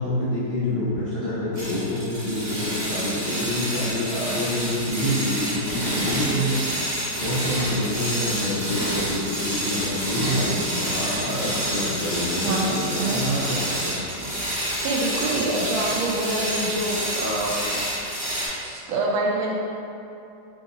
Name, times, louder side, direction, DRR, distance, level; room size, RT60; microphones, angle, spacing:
voice 1, 0.0-6.6 7.2-14.0, left 1 dB, 65° left, -13 dB, 0.5 m, -27 dB
sound 1, 1.5-18.5, equal, 40° right, 0.5 m, -28 dB
voice 2, 12.4-13.2 14.8-17.5 18.3-19.5, right 2 dB, 75° right, -2 dB, 1.3 m, -27 dB
4.5 x 2.7 x 2.7 m, 2.7 s
omnidirectional pair, 2.2 m